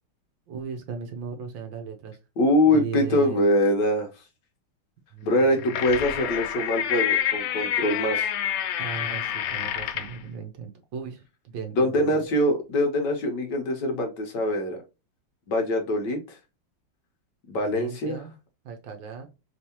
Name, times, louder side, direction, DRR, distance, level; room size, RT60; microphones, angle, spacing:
voice 1, 0.5-2.2 2.7-3.5 5.1-5.8 8.8-12.2 17.5-18.3 18.6-19.3, right 6 dB, 65° right, 5 dB, 1.4 m, -37 dB
voice 2, 2.4-4.2 5.2-8.3 11.8-14.8 15.5-16.4 17.5-18.2, left 1 dB, 65° left, 4 dB, 1.3 m, -23 dB
sound 1, 5.3-10.2, left 9 dB, 85° left, 1.5 m, -28 dB
3.6 x 3.3 x 2.8 m, 0.28 s
omnidirectional pair, 2.3 m